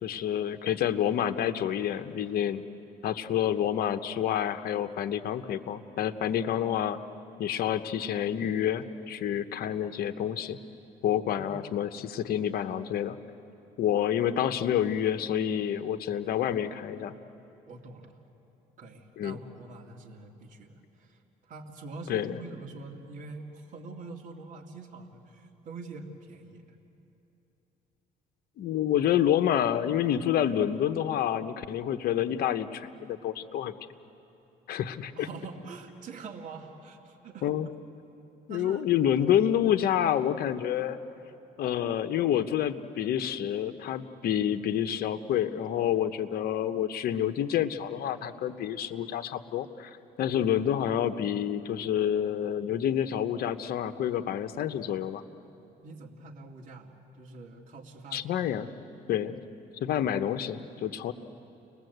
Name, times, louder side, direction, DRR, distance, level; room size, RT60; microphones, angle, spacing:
voice 1, 0.0-2.6 3.0-7.0 7.4-10.6 11.0-13.2 13.8-17.1 19.2-19.4 22.1-22.4 28.6-33.8 34.7-35.3 37.4-37.7 38.5-41.0 41.6-55.2 58.1-58.7 59.1-59.4 59.8-61.1, left 10 dB, 65° left, 9 dB, 1.0 m, -28 dB
voice 2, 11.3-11.7 17.7-18.2 18.8-26.6 35.2-37.6 38.5-38.8 55.8-58.3 58.8-58.9, right 3 dB, 50° right, 0 dB, 2.4 m, -45 dB
30.0 x 20.5 x 8.0 m, 2.9 s
cardioid pair, 110°, 17 cm